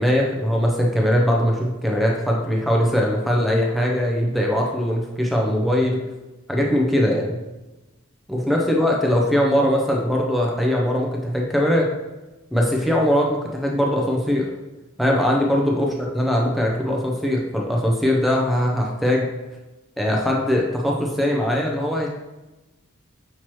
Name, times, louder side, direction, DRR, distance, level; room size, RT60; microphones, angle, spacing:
voice 1, 0.0-6.0 6.5-7.4 8.3-11.9 12.5-14.5 15.0-19.3 20.0-22.1, equal, ahead, -1 dB, 0.4 m, -21 dB
6.0 x 2.9 x 3.0 m, 1.1 s
head